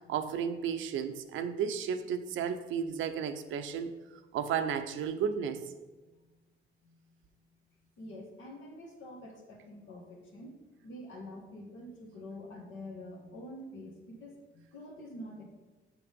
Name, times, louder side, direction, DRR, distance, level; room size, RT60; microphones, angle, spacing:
voice 1, 0.1-3.9 4.3-5.6, right 7 dB, 80° right, 8 dB, 0.6 m, -33 dB
voice 2, 8.0-10.5 10.8-15.4, left 1 dB, 75° left, -1 dB, 1.5 m, -46 dB
5.9 x 5.9 x 5.2 m, 1.2 s
cardioid pair, 90°, 20 cm